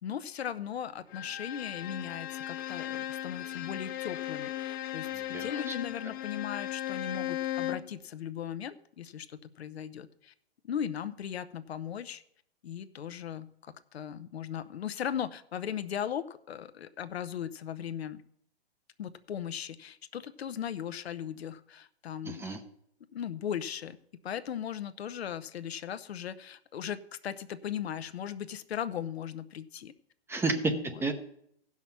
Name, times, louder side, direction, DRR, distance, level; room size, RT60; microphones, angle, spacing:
voice 1, 0.0-10.3 10.6-12.2 12.6-18.2 19.0-22.5 23.1-24.0 24.2-29.9 30.7-31.0, left 9 dB, 75° left, 11 dB, 0.8 m, -38 dB
Bowed string instrument, 1.1-8.0, left 13 dB, 20° left, 0.3 m, -37 dB
voice 2, 5.1-5.7 22.2-22.6 30.3-30.7 31.0-31.1, right 3 dB, 10° right, 6 dB, 0.8 m, -31 dB
15.5 x 5.9 x 5.8 m, 0.70 s
hypercardioid pair, 125°, 32 cm